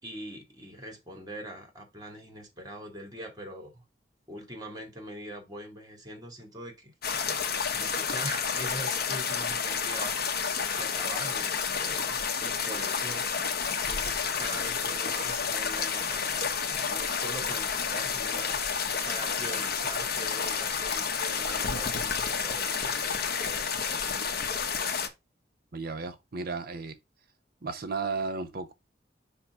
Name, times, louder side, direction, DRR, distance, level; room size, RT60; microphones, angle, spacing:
voice 1, 0.0-3.8 4.3-6.9 7.7-10.4 10.7-13.4 13.8-18.6 19.0-24.1, right 1 dB, 20° right, 2.3 m, -42 dB
sound 1, 7.0-25.1, left 6 dB, 55° left, 1.3 m, -30 dB
voice 2, 25.7-27.0 27.6-28.7, right 4 dB, 55° right, 0.9 m, -34 dB
5.8 x 3.5 x 5.9 m
head